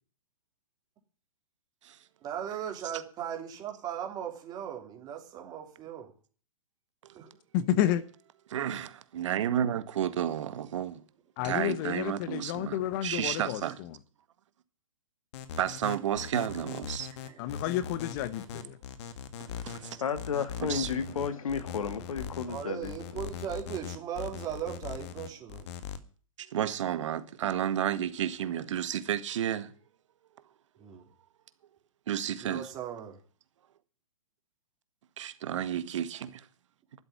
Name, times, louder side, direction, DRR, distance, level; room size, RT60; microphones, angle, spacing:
voice 1, 2.2-6.1 7.1-7.3 17.2-17.4 22.5-25.7 30.8-31.0 32.4-33.2, right 9 dB, 20° right, 3.4 m, -38 dB
voice 2, 7.5-8.0 11.4-13.9 17.4-18.8, left 12 dB, 35° left, 1.0 m, -30 dB
voice 3, 8.5-11.0 11.4-13.8 15.6-17.1 19.6-20.0 20.6-20.9 26.4-29.7 32.1-32.6 35.2-36.5, right 10 dB, 60° right, 1.7 m, -31 dB
sound 1, 15.3-26.0, left 8 dB, 55° left, 1.9 m, -40 dB
voice 4, 19.4-23.3, left 6 dB, 80° left, 2.2 m, -34 dB
12.0 x 7.8 x 9.8 m
hypercardioid pair, 145°, 17 cm